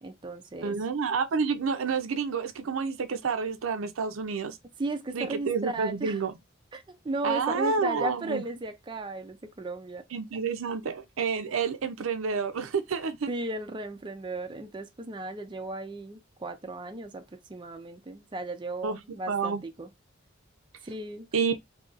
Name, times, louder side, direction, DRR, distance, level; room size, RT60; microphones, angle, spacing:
voice 1, 0.0-0.8 4.8-6.2 6.7-10.0 13.3-19.9 20.8-21.3, right 2 dB, 25° right, 0.4 m, -35 dB
voice 2, 0.6-4.6 5.1-6.3 7.2-8.4 10.1-13.3 18.8-19.0 19.3-19.6 21.3-21.6, right 5 dB, 85° right, 0.5 m, -29 dB
2.7 x 2.5 x 3.9 m
head